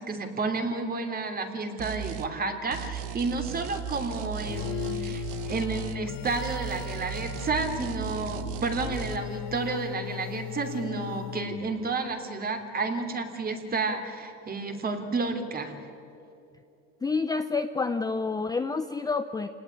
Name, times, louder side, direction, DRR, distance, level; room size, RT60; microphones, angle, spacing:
voice 1, 0.0-15.8, right 3 dB, 25° right, 5 dB, 3.2 m, -31 dB
sound 1, 1.8-2.3 2.7-6.0 6.2-9.2, right 9 dB, 65° right, 1.5 m, -36 dB
sound 2, 4.5-11.9, left 13 dB, 55° left, 1.0 m, -38 dB
voice 2, 17.0-19.5, left 4 dB, 10° left, 9 dB, 0.7 m, -28 dB
27.5 x 18.5 x 9.9 m, 2.8 s
supercardioid pair, 120°, 33 cm